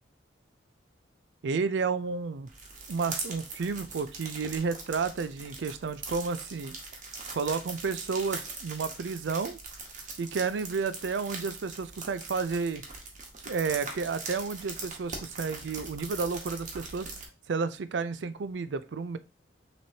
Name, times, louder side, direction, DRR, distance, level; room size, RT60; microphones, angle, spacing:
voice 1, 1.4-2.5 2.9-6.7 7.3-9.6 10.2-12.8 13.5-17.1 17.5-19.2, right 5 dB, 70° right, 14 dB, 0.4 m, -31 dB
sound 1, 2.5-17.2, right 3 dB, 45° right, 1.2 m, -41 dB
6.0 x 3.0 x 2.8 m, 0.31 s
head